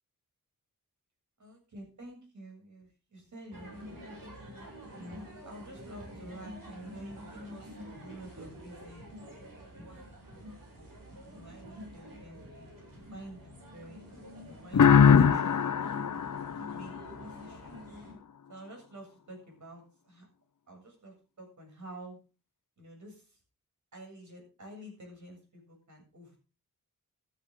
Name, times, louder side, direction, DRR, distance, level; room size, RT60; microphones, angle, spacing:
voice 1, 1.4-4.0 4.9-9.1 9.7-10.2 10.7-11.0 11.2-15.9 16.6-16.9 17.2-17.9 18.5-20.3 20.7-22.2 22.8-23.4 23.9-26.4, right 1 dB, 60° right, 1 dB, 7.6 m, -49 dB
sound 1, 3.5-18.1, equal, 80° right, 7.8 m, -47 dB
sound 2, 14.7-17.4, left 7 dB, 65° left, 0.9 m, -22 dB
14.0 x 13.0 x 3.9 m, 0.32 s
wide cardioid pair, 130°, 33 cm